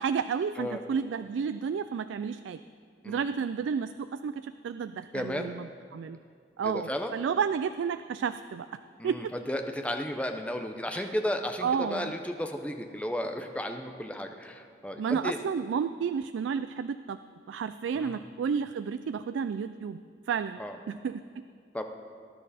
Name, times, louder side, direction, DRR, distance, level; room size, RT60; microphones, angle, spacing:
voice 1, 0.0-2.6 3.1-6.2 6.6-8.7 9.0-9.3 10.9-11.1 11.6-12.1 15.0-17.2 17.5-20.0 20.3-20.6 20.9-21.2, right 6 dB, 85° right, 11 dB, 0.3 m, -31 dB
voice 2, 5.1-5.5 6.6-7.1 9.0-15.4 18.0-18.3 20.6-20.8 21.7-21.8, left 1 dB, 5° left, 5 dB, 0.6 m, -34 dB
18.5 x 10.5 x 4.2 m, 2.3 s
head